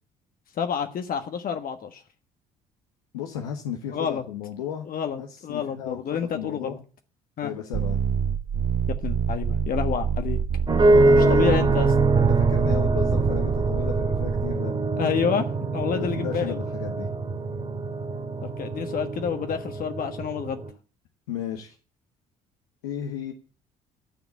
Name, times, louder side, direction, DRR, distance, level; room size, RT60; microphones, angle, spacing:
voice 1, 0.6-2.0 3.9-4.2 4.9-6.8 7.4-7.5 8.9-10.4 11.2-11.9 15.0-16.6 18.4-20.6, left 7 dB, 50° left, 1.4 m, -29 dB
voice 2, 3.1-4.8 5.2-6.8 7.4-8.0 10.8-15.1 15.9-17.1 21.3-21.7 22.8-23.3, left 9 dB, 80° left, 1.4 m, -34 dB
sound 1, 7.7-14.6, right 7 dB, 40° right, 0.9 m, -27 dB
sound 2, 10.7-20.7, right 3 dB, 25° right, 2.9 m, -23 dB
13.5 x 7.2 x 8.4 m
hypercardioid pair, 55°, 18 cm